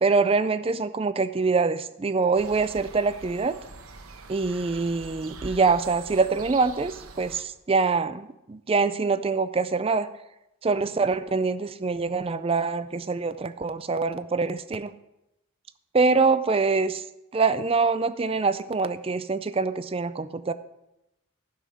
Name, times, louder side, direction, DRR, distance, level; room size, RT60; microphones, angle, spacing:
voice 1, 0.0-3.6 4.3-10.1 10.6-14.9 15.9-17.0 17.3-20.5, right 4 dB, 25° right, 13 dB, 0.4 m, -24 dB
sound 1, 2.3-7.4, right 3 dB, 85° right, 1.0 m, -44 dB
12.0 x 5.6 x 6.3 m, 0.91 s
head